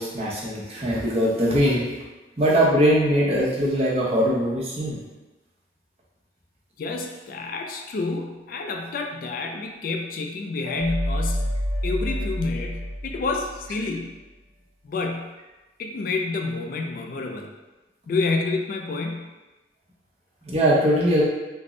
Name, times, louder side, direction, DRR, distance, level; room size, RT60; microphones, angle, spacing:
voice 1, 0.0-1.9 2.4-5.0 20.4-21.2, equal, 35° right, -6 dB, 0.8 m, -21 dB
voice 2, 6.8-11.5 11.8-14.2 14.8-15.4 15.8-17.5 18.1-19.3, left 3 dB, 50° left, 3 dB, 0.3 m, -29 dB
sound 1, 10.7-13.8, equal, 60° right, 0.9 m, -28 dB
3.5 x 2.0 x 3.7 m, 1.1 s
head